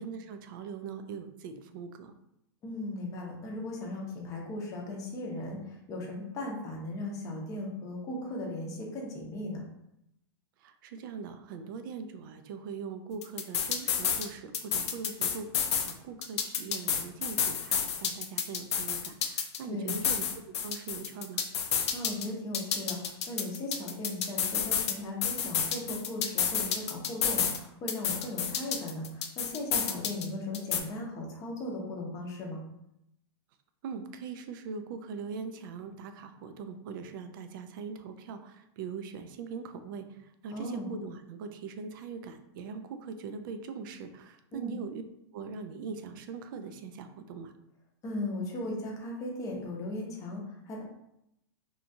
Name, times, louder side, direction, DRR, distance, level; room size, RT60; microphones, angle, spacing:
voice 1, 0.0-2.1 10.6-21.4 33.8-45.0 45.3-47.5, right 5 dB, 50° right, 8 dB, 0.4 m, -41 dB
voice 2, 2.6-9.6 19.6-20.0 21.9-32.6 40.5-40.9 44.5-44.7 48.0-50.8, left 1 dB, 25° left, -1 dB, 0.6 m, -37 dB
sound 1, 13.2-14.3 14.5-15.9 16.2-19.6 19.9-22.3 22.5-24.9 25.2-27.6 27.9-30.3 30.5-30.8, left 7 dB, 85° left, 0.5 m, -30 dB
2.9 x 2.3 x 2.6 m, 0.81 s
hypercardioid pair, 145°, 14 cm